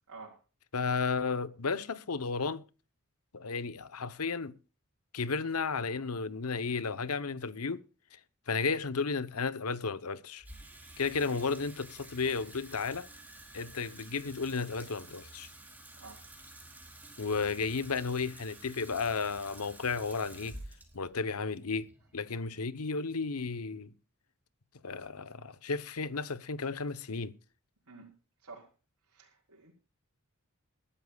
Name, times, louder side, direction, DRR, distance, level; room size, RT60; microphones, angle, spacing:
voice 1, 0.1-0.4 11.2-11.3 16.0-16.2 27.9-28.1 28.4-28.7 29.1-29.7, right 3 dB, 90° right, 3.9 m, -50 dB
voice 2, 0.7-2.6 3.3-4.5 5.1-7.8 8.5-10.4 11.0-13.1 13.5-15.5 17.2-20.6 20.9-23.9 24.8-27.3, left 4 dB, 85° left, 1.0 m, -33 dB
Water tap faucet / Sink (filling or washing), 10.4-22.8, right 1 dB, 10° right, 4.5 m, -51 dB
22.0 x 12.5 x 2.4 m
head